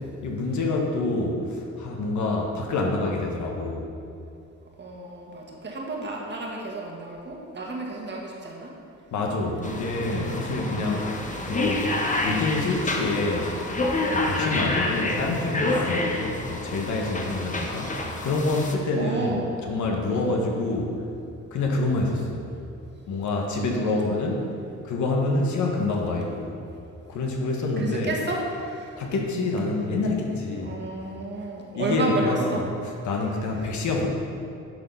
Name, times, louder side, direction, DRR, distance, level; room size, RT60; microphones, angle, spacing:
voice 1, 0.2-3.9 9.1-11.1 11.4-11.9 12.2-13.5 14.1-18.0 18.2-21.0 21.5-22.5 23.1-24.5 24.8-26.6 27.1-28.1 29.0-30.7 31.7-34.1, left 2 dB, 75° left, 0 dB, 1.3 m, -27 dB
voice 2, 4.8-8.7 10.5-10.9 19.0-19.5 20.1-20.4 23.5-24.0 27.8-29.0 30.5-32.6, right 2 dB, 35° right, -1 dB, 1.6 m, -31 dB
sound 1, 9.6-18.7, left 2 dB, 25° left, 1.0 m, -28 dB
10.5 x 4.1 x 5.5 m, 2.5 s
cardioid pair, 90°, 30 cm